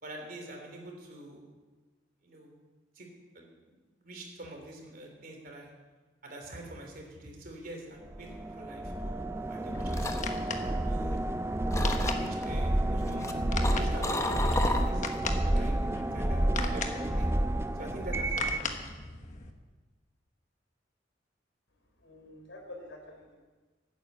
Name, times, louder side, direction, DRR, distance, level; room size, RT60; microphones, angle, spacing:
voice 1, 0.0-1.4 2.2-2.6 2.9-3.1 3.3-3.7 4.0-5.7 6.2-8.9 9.5-11.3 11.7-15.0 15.4-15.8 16.1-17.3 17.7-18.9, right 1 dB, 50° right, 1 dB, 3.2 m, -45 dB
sound 1, 8.1-18.7, right 1 dB, 15° right, 0.4 m, -30 dB
sound 2, 9.5-11.4 11.7-12.4 13.0-15.3 15.6-15.9, left 2 dB, 15° left, 0.8 m, -34 dB
sound 3, 9.9-19.5, left 4 dB, 40° left, 1.2 m, -40 dB
voice 2, 22.0-23.3, left 2 dB, 85° left, 1 dB, 3.9 m, -47 dB
12.5 x 9.5 x 8.2 m, 1.3 s
head